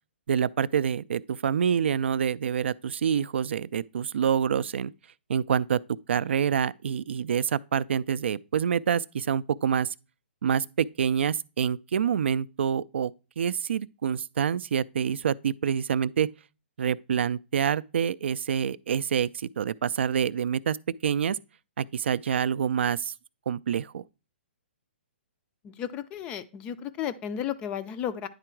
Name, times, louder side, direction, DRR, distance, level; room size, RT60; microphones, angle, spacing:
voice 1, 0.3-4.9 5.3-5.8 6.1-9.9 10.4-16.3 16.8-20.8 21.0-21.4 21.8-23.1 23.5-24.0, right 8 dB, 70° right, 0.3 m, -27 dB
voice 2, 25.6-28.3, left 9 dB, 15° left, 0.3 m, -33 dB
9.8 x 3.8 x 4.5 m
hypercardioid pair, 160°, 6 cm